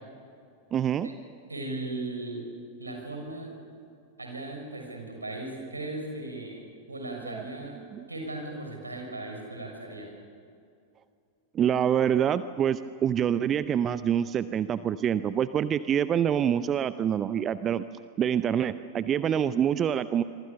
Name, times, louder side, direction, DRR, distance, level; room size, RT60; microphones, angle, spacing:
voice 1, 0.7-1.1 7.3-7.4 7.9-8.1 11.5-17.8 18.2-20.2, right 9 dB, 25° right, 14 dB, 0.7 m, -26 dB
voice 2, 1.5-2.4 2.8-3.5 4.2-6.6 6.9-7.8 8.1-10.1, right 2 dB, 80° right, 2 dB, 6.2 m, -37 dB
26.5 x 24.0 x 6.9 m, 2.4 s
figure-of-eight pair, 90°, 0 cm